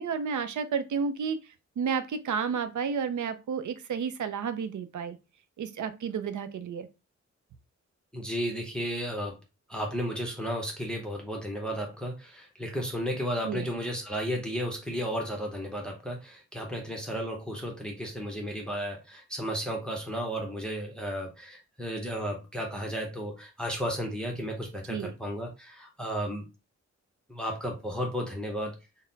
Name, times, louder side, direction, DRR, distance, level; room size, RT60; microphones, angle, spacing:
voice 1, 0.0-1.4 1.8-5.2 5.6-6.9 13.4-13.7 24.9-25.1, right 6 dB, 85° right, 0.6 m, -31 dB
voice 2, 8.1-9.4 9.7-26.4 27.3-28.8, equal, 5° left, 0.8 m, -33 dB
4.0 x 2.1 x 3.9 m
wide cardioid pair, 165°, 29 cm